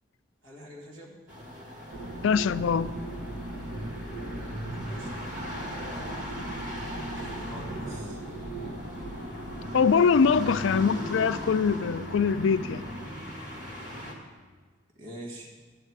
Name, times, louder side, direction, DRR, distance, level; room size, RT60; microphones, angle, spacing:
voice 1, 0.4-1.1 4.8-5.2 7.2-8.2 9.9-10.8 15.0-15.5, right 1 dB, 80° right, 2.0 m, -46 dB
sound 1, 1.3-14.1, left 1 dB, 40° right, 1.6 m, -40 dB
sound 2, 1.9-13.1, right 1 dB, 65° right, 1.0 m, -38 dB
voice 2, 2.2-2.9 9.7-12.8, left 6 dB, 75° left, 0.4 m, -23 dB
12.5 x 9.0 x 4.7 m
head